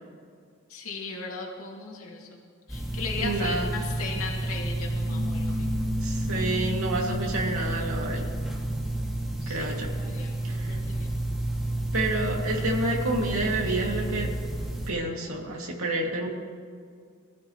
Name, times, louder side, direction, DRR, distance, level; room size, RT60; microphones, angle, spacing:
voice 1, 0.7-2.4 2.7-5.7 9.4-11.1, left 4 dB, 90° left, -2 dB, 2.4 m, -37 dB
sound 1, 2.7-14.9, right 1 dB, ahead, 2.3 m, -30 dB
voice 2, 3.2-3.7 6.0-8.3 9.5-9.9 10.4-10.8 11.9-14.4 14.9-16.3, right 2 dB, 85° right, -1 dB, 2.6 m, -29 dB
Piano, 5.1-10.2, left 3 dB, 40° left, 0.9 m, -37 dB
24.0 x 14.5 x 3.2 m, 2.1 s
head